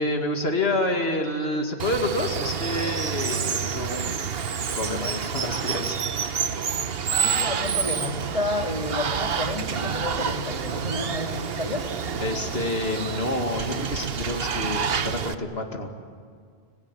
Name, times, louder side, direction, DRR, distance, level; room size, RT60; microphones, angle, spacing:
voice 1, 0.0-4.4 4.7-6.4 12.2-15.9, left 2 dB, 70° left, 4 dB, 2.7 m, -28 dB
Water, 1.8-15.3, right 7 dB, 65° right, 1.2 m, -28 dB
voice 2, 7.1-11.9, left 2 dB, 30° left, 2 dB, 2.7 m, -31 dB
30.0 x 19.0 x 9.8 m, 2.1 s
omnidirectional pair, 1.1 m